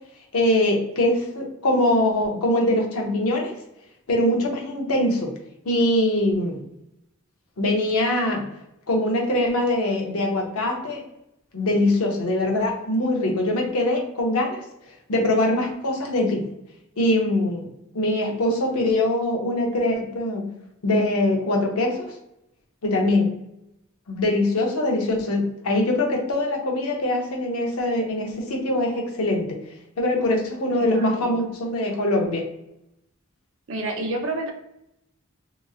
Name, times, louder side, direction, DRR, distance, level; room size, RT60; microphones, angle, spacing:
voice 1, 0.3-3.6 4.1-5.3 5.6-6.6 7.6-8.5 8.9-11.0 11.5-14.6 15.1-16.4 17.0-17.7 17.9-20.5 20.8-22.2 22.8-23.3 24.1-29.6 30.0-32.5, left 1 dB, 90° left, 1 dB, 0.7 m, -23 dB
voice 2, 30.7-31.5 33.7-34.5, right 2 dB, 65° right, 3 dB, 0.5 m, -30 dB
3.0 x 2.4 x 2.3 m, 0.82 s
head